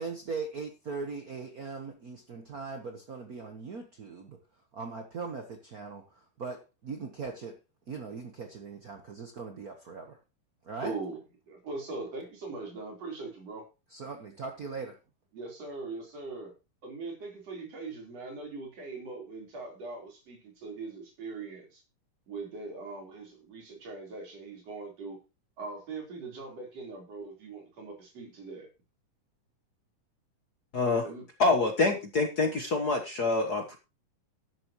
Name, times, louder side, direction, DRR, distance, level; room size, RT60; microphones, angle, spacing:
voice 1, 0.0-4.4 4.7-7.6 7.9-10.2 10.6-10.9 13.9-15.0, right 4 dB, 75° right, 0.8 m, -40 dB
voice 2, 10.8-11.2 11.5-13.7 15.3-16.5 16.8-21.8 22.3-25.2 25.6-28.7 31.0-31.2, right 3 dB, 50° right, 5.1 m, -41 dB
voice 3, 30.7-31.0 31.4-33.8, left 3 dB, 55° left, 1.1 m, -26 dB
12.0 x 11.0 x 3.1 m
omnidirectional pair, 3.6 m